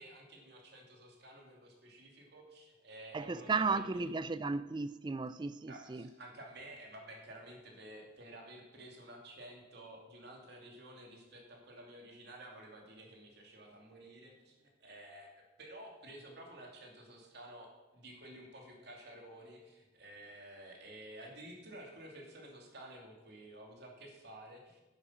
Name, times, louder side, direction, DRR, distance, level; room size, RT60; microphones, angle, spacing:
voice 1, 0.0-4.1 5.7-24.8, right 1 dB, 55° right, 2.8 m, -52 dB
voice 2, 3.1-6.0, right 4 dB, 25° right, 0.3 m, -35 dB
10.5 x 9.9 x 5.7 m
head